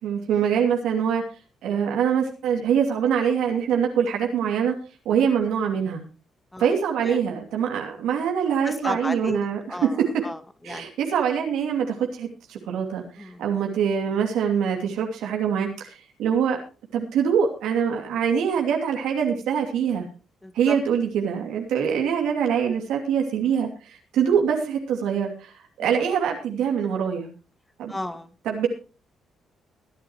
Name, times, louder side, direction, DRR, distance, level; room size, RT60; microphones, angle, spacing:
voice 1, 0.0-1.2 1.6-4.7 5.0-6.0 6.6-10.2 10.6-16.6 16.9-20.1 20.5-27.3 27.8-27.9 28.4-28.7, right 7 dB, 85° right, 1 dB, 2.7 m, -24 dB
voice 2, 8.6-9.4 9.7-10.9 13.2-13.5 20.4-20.8 25.8-25.9 27.9-28.3, left 1 dB, 10° left, 9 dB, 1.8 m, -34 dB
23.5 x 8.9 x 3.1 m, 0.35 s
cardioid pair, 90°, 0 cm